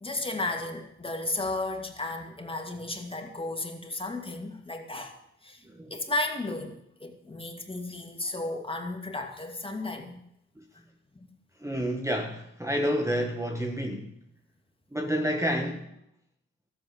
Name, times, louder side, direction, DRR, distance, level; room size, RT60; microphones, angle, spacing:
voice 1, 0.0-5.6 5.9-10.2 11.2-11.3, left 2 dB, 15° left, 4 dB, 2.4 m, -34 dB
voice 2, 11.6-14.1 14.9-15.9, equal, 10° right, 3 dB, 1.5 m, -29 dB
13.5 x 7.6 x 8.3 m, 0.78 s
supercardioid pair, 60°, 31 cm